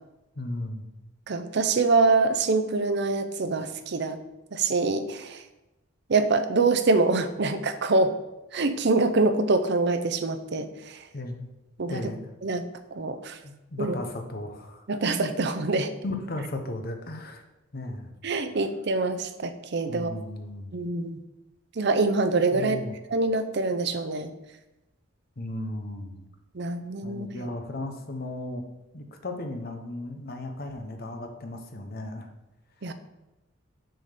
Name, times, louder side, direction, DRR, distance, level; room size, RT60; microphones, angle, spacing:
voice 1, 0.3-0.9 11.1-11.5 11.9-12.3 13.4-14.9 16.0-17.4 17.7-18.1 19.9-20.7 22.5-22.9 25.4-26.2 27.0-28.7 28.9-32.3, left 2 dB, 50° left, 5 dB, 0.9 m, -35 dB
voice 2, 1.3-4.2 4.5-5.4 6.1-8.1 8.5-10.7 11.8-12.0 12.4-12.6 12.9-13.4 13.8-14.0 14.9-15.9 18.2-20.1 20.7-21.2 21.8-22.8 23.1-24.3 26.5-27.5 32.8-32.9, right 3 dB, 60° right, 9 dB, 0.6 m, -25 dB
6.4 x 4.3 x 6.5 m, 0.98 s
head